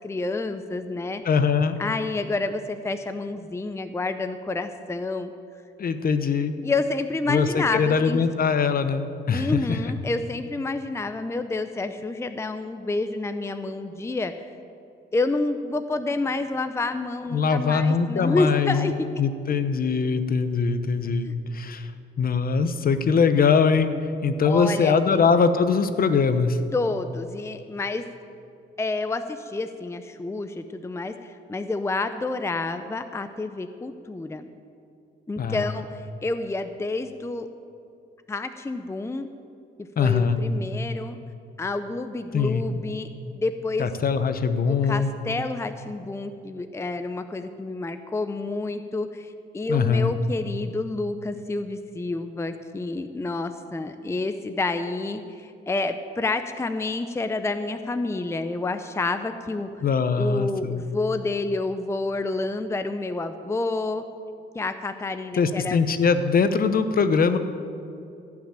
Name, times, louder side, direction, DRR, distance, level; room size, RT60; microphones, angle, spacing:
voice 1, 0.0-1.2 1.8-5.3 6.6-8.2 9.3-14.3 15.1-18.9 21.2-21.3 24.4-25.3 26.7-28.1 28.8-34.5 35.3-37.5 38.3-39.3 40.0-41.2 41.6-43.1 43.4-43.9 44.7-59.7 60.2-64.0 64.5-65.8, left 3 dB, 15° left, 9 dB, 0.6 m, -29 dB
voice 2, 1.2-1.8 5.8-6.5 7.3-9.8 17.3-18.9 19.2-21.9 22.2-23.9 24.2-26.6 35.4-35.7 40.0-40.4 42.3-42.6 43.8-45.1 49.7-50.1 59.8-60.8 65.4-67.4, left 5 dB, 45° left, 10 dB, 0.9 m, -22 dB
15.5 x 6.0 x 8.9 m, 2.6 s
cardioid pair, 90°, 20 cm